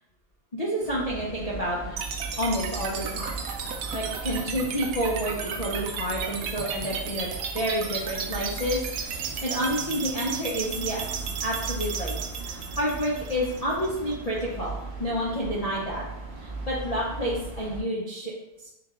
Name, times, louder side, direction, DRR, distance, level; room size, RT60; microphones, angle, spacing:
voice 1, 0.5-2.0 2.4-3.3 3.9-7.3 7.5-11.1 11.4-16.0 16.4-18.3, equal, 35° left, -6 dB, 0.6 m, -29 dB
sound 1, 0.8-17.8, right 3 dB, 40° right, 0.9 m, -38 dB
sound 2, 2.0-14.0, right 6 dB, 75° right, 1.0 m, -34 dB
3.8 x 3.4 x 3.7 m, 0.92 s
omnidirectional pair, 1.6 m